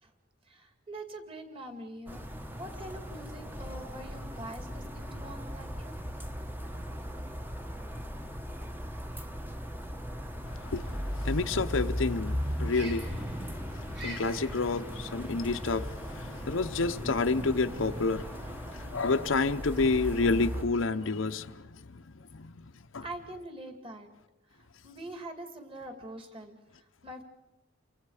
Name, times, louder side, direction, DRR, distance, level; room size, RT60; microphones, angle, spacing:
voice 1, 0.4-2.3 2.5-5.9 6.7-6.8 23.0-24.1 24.5-27.2, right 1 dB, 25° right, 2.6 m, -44 dB
sound 1, 2.1-20.6, equal, 10° right, 1.0 m, -37 dB
voice 2, 10.5-22.6 22.9-23.0, left 3 dB, 70° left, 0.8 m, -30 dB
sound 2, 12.7-22.9, equal, 55° right, 4.9 m, -51 dB
30.0 x 24.5 x 5.0 m
head